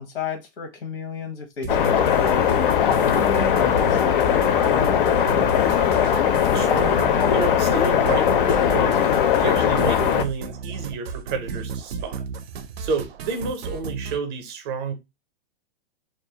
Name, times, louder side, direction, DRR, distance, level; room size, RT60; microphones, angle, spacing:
voice 1, 0.0-5.4, left 5 dB, 90° left, 0.8 m, -33 dB
sound 1, 1.6-14.2, right 6 dB, 90° right, 0.5 m, -33 dB
sound 2, 1.7-10.2, left 9 dB, 60° left, 0.5 m, -19 dB
voice 2, 6.5-9.1 9.4-12.2 12.8-14.9, right 5 dB, 25° right, 0.5 m, -30 dB
2.3 x 2.0 x 2.7 m
hypercardioid pair, 155°, 30 cm